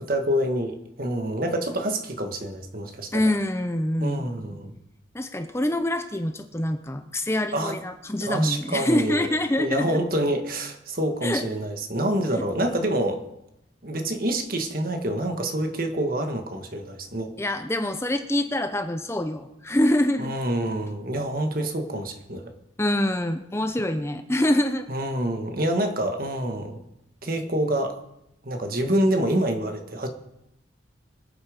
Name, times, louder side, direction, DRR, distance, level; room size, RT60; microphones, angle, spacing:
voice 1, 0.0-3.2 4.0-4.7 7.5-7.8 8.2-9.3 9.6-13.2 13.8-17.3 20.2-22.5 24.9-26.8 27.2-27.9 28.4-30.1, right 1 dB, 50° right, 5 dB, 1.8 m, -27 dB
voice 2, 3.1-4.3 5.1-10.0 11.2-11.5 17.4-20.3 22.8-24.9, left 1 dB, 15° left, 7 dB, 0.7 m, -25 dB
24.5 x 8.7 x 5.3 m, 0.86 s
head